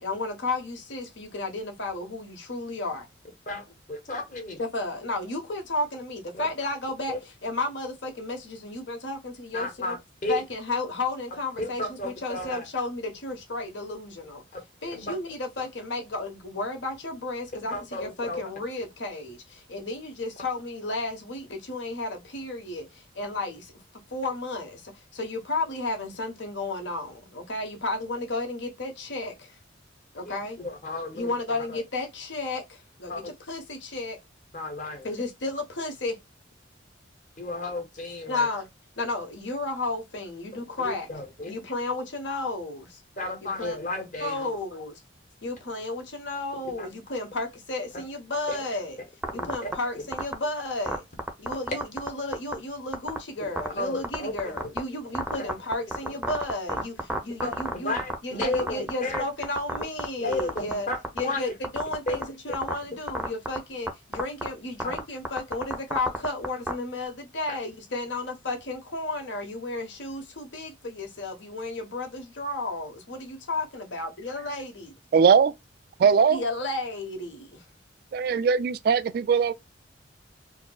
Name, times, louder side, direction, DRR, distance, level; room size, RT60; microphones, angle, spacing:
voice 1, 0.0-3.1 4.6-10.0 10.3-14.4 14.8-23.7 24.1-29.6 30.1-30.6 31.1-34.2 35.0-36.2 38.3-38.7 39.0-41.1 41.5-43.0 43.6-43.8 44.2-45.0 45.4-49.0 49.3-51.0 51.4-60.9 61.1-74.9 76.3-77.6, left 2 dB, 70° left, 1.1 m, -33 dB
voice 2, 3.5-4.6 6.3-6.5 7.1-7.2 9.5-10.0 10.2-10.4 11.6-12.6 14.5-15.1 17.7-18.4 30.2-31.8 33.1-33.3 34.5-35.1 37.4-38.5 40.6-41.5 43.2-44.5 46.8-46.9 48.5-48.6 49.3-49.7 53.8-54.5 57.4-59.2 60.2-61.4 62.1-62.2 64.8-65.0 67.5-67.6, left 2 dB, 40° left, 1.2 m, -33 dB
sound 1, 49.2-49.7 50.1-50.3 50.9-52.1 52.3-52.5 52.9-53.2 53.6-53.7 54.0-54.8 55.1-58.1 58.4-59.2 59.4-60.0 60.3-61.2 61.6-62.2 62.5-62.7 63.1-63.6 63.9-64.0 64.1-64.5 64.8-66.7, right 1 dB, 5° right, 0.6 m, -28 dB
voice 3, 75.1-75.5 76.0-76.5 78.1-79.5, right 6 dB, 50° right, 0.3 m, -20 dB
4.3 x 2.0 x 2.2 m
head